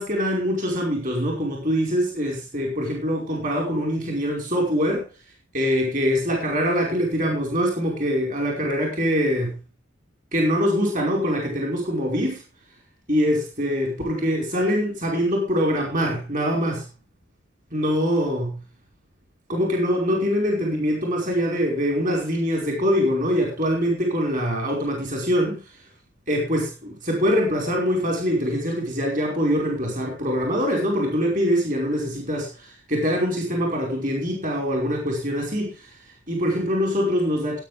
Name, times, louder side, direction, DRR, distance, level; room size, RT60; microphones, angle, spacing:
voice 1, 0.0-5.1 5.5-9.6 10.3-12.4 13.1-16.9 17.7-18.6 19.5-25.7 26.3-37.6, equal, 40° right, 5.3 m, -24 dB
18.0 x 9.7 x 3.6 m
head